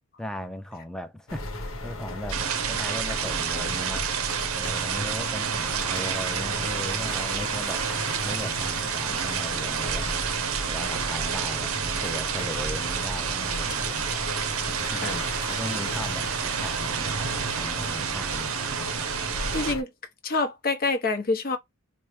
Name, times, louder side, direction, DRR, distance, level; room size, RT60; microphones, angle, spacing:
voice 1, 0.2-4.1 4.5-7.9 8.2-10.1 10.7-14.1 14.6-15.2 15.5-16.3 16.6-17.3 17.6-18.5, left 1 dB, 5° left, 0.4 m, -38 dB
sound 1, 1.3-19.8, left 2 dB, 80° left, 0.9 m, -35 dB
sound 2, 2.3-19.7, right 8 dB, 85° right, 0.5 m, -29 dB
voice 2, 19.5-19.9 20.2-21.6, left 3 dB, 45° left, 0.8 m, -26 dB
4.5 x 2.0 x 3.1 m
head